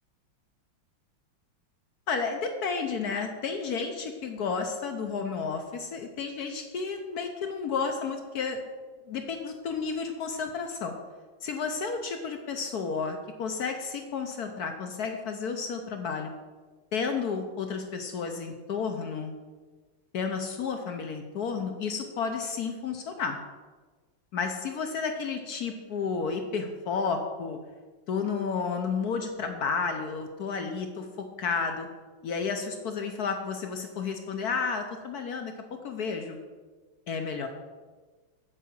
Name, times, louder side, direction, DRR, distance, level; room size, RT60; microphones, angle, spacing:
voice 1, 2.1-8.6 9.1-10.9 11.4-16.3 16.9-19.3 20.1-23.4 24.3-27.6 28.1-31.1 31.4-31.9 32.2-35.5 35.8-36.4 37.1-37.5, left 5 dB, 70° left, 5 dB, 0.9 m, -32 dB
8.5 x 4.8 x 7.0 m, 1.4 s
omnidirectional pair, 2.4 m